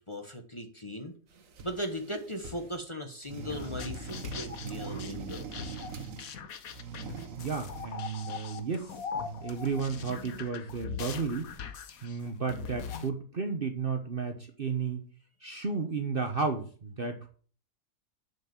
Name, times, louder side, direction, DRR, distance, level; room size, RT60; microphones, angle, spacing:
voice 1, 0.1-1.1 1.6-5.5, equal, 20° left, 4 dB, 1.3 m, -38 dB
sound 1, 1.3-2.8 3.2-6.3 6.6-10.5, right 6 dB, 60° right, 1.5 m, -44 dB
sound 2, 3.5-13.1, left 7 dB, 65° left, 1.4 m, -41 dB
voice 2, 7.4-11.5 12.0-15.1 15.4-17.3, right 5 dB, 40° right, 6 dB, 1.0 m, -33 dB
7.4 x 7.3 x 7.2 m, 0.42 s
omnidirectional pair, 1.6 m